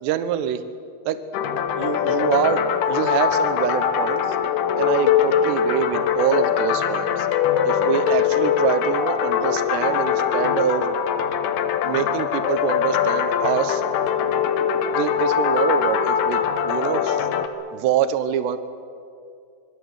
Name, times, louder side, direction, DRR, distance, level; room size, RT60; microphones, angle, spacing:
voice 1, 0.0-0.6 1.1-1.2 1.8-4.4 4.8-7.3 7.6-10.9 11.8-13.8 14.9-17.3 17.7-18.6, right 10 dB, 75° right, 10 dB, 3.1 m, -25 dB
sound 1, 1.3-17.5, left 8 dB, 70° left, 2.9 m, -22 dB
25.5 x 22.5 x 8.1 m, 2.3 s
omnidirectional pair, 5.2 m